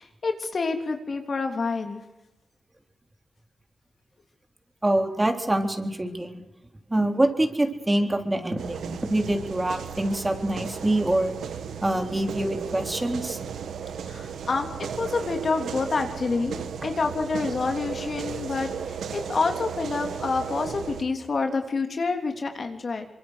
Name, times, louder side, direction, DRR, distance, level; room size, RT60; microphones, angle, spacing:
voice 1, 0.0-2.0 14.1-23.1, left 4 dB, 60° left, 5 dB, 3.3 m, -28 dB
voice 2, 4.8-6.4 6.9-11.3 11.8-13.4, right 1 dB, 20° right, 5 dB, 3.8 m, -25 dB
sound 1, 8.6-21.0, right 7 dB, 90° right, 1.5 m, -35 dB
25.0 x 23.0 x 6.5 m, 0.98 s
cardioid pair, 50°, 0 cm